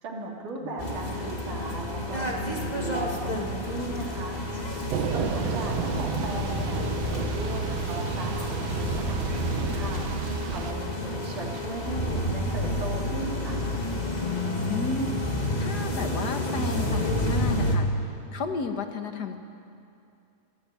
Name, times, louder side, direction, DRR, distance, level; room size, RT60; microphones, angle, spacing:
voice 1, 0.0-4.4 5.1-10.1 10.5-10.9 11.2-13.6, right 2 dB, 85° right, -3 dB, 4.7 m, -37 dB
sound 1, 0.8-17.8, left 1 dB, 15° left, 1.9 m, -30 dB
Thunder / Rain, 4.9-10.7, right 5 dB, 60° right, 2.2 m, -31 dB
voice 2, 14.7-17.9 18.3-19.4, left 4 dB, 45° left, 6 dB, 1.4 m, -33 dB
26.0 x 16.5 x 10.0 m, 2.5 s
omnidirectional pair, 3.5 m